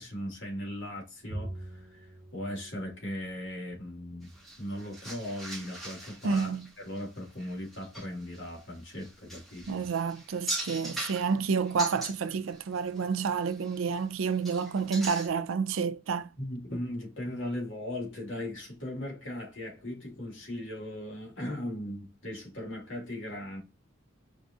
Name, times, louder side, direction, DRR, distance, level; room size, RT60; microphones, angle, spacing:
voice 1, 0.0-4.3 4.6-6.5 6.8-9.9 16.4-23.6, left 1 dB, 70° left, 1.9 m, -38 dB
Bowed string instrument, 1.3-3.8, right 1 dB, 35° right, 0.6 m, -44 dB
sound 1, 4.2-12.6 12.9-14.0 14.3-15.3, right 1 dB, ahead, 1.0 m, -41 dB
voice 2, 6.2-6.7 9.7-16.3, right 5 dB, 80° right, 0.4 m, -29 dB
4.8 x 2.6 x 2.4 m
head